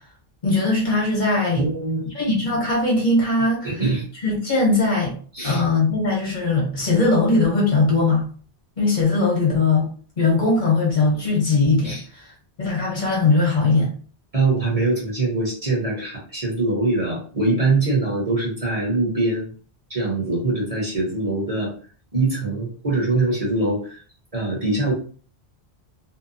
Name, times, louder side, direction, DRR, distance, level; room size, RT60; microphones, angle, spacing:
voice 1, 0.4-1.6 2.1-3.8 4.2-5.1 5.4-8.2 8.8-9.8 10.2-12.3 12.6-13.9 14.6-14.7, left 3 dB, 50° left, -3 dB, 1.1 m, -20 dB
voice 2, 1.5-2.0 3.6-4.0 5.3-5.6 11.8-12.0 14.3-19.5 19.9-21.7 22.1-24.0 24.3-24.9, right 2 dB, 35° right, -4 dB, 1.0 m, -23 dB
2.8 x 2.1 x 2.6 m, 0.42 s
omnidirectional pair, 1.1 m